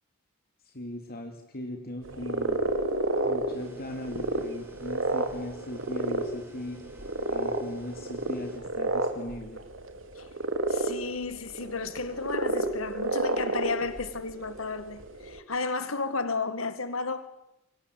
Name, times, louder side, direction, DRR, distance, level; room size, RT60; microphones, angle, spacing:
voice 1, 0.6-2.6 3.2-6.8 7.3-9.6, left 1 dB, 50° left, 2.7 m, -39 dB
sound 1, 2.0-15.4, right 2 dB, 70° right, 3.5 m, -31 dB
sound 2, 3.5-8.6, right 1 dB, 10° right, 5.0 m, -53 dB
voice 2, 10.7-17.3, left 4 dB, 85° left, 1.9 m, -33 dB
29.0 x 24.5 x 8.4 m
head